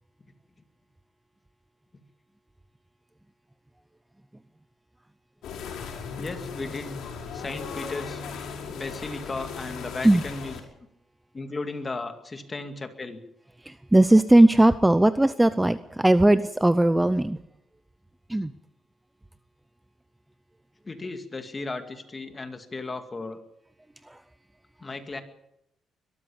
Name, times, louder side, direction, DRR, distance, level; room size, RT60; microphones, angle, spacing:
sound 1, 5.4-10.6, left 5 dB, 80° left, 5.2 m, -37 dB
voice 1, 6.2-7.0 7.3-8.2 8.7-10.6 11.3-13.2 20.8-23.4 24.8-25.2, left 3 dB, 25° left, 7 dB, 2.2 m, -35 dB
voice 2, 13.7-17.4 18.3-18.5, right 1 dB, 10° right, 13 dB, 0.6 m, -18 dB
22.0 x 13.5 x 8.7 m, 0.82 s
cardioid pair, 115°, 0 cm